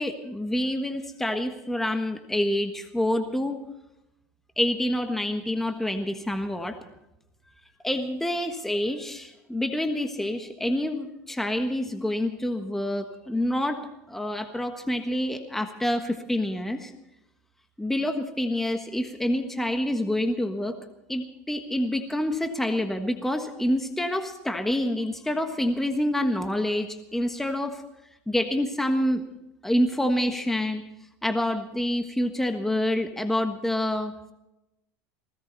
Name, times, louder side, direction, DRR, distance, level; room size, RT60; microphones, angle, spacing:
voice 1, 0.0-3.6 4.6-6.8 7.8-13.8 14.1-16.9 17.8-20.7 21.1-27.8 28.3-29.2 29.6-30.8 31.2-34.1, left 1 dB, 5° left, 6 dB, 1.4 m, -27 dB
19.5 x 17.5 x 4.1 m, 0.91 s
supercardioid pair, 125°, 7 cm